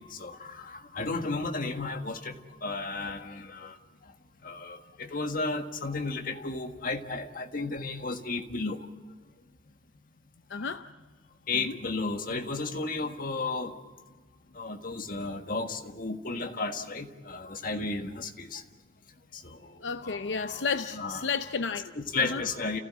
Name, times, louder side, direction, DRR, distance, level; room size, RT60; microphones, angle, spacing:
voice 1, 0.0-3.8 4.0-4.1 4.4-8.9 11.5-13.8 14.5-18.6 19.3-20.6 20.9-21.3 21.9-22.8, left 3 dB, 50° left, 1.7 m, -34 dB
voice 2, 10.5-10.9 11.5-11.8 19.5-19.6 19.8-21.9 22.2-22.4, left 5 dB, 80° left, 0.7 m, -32 dB
30.0 x 16.0 x 7.5 m
head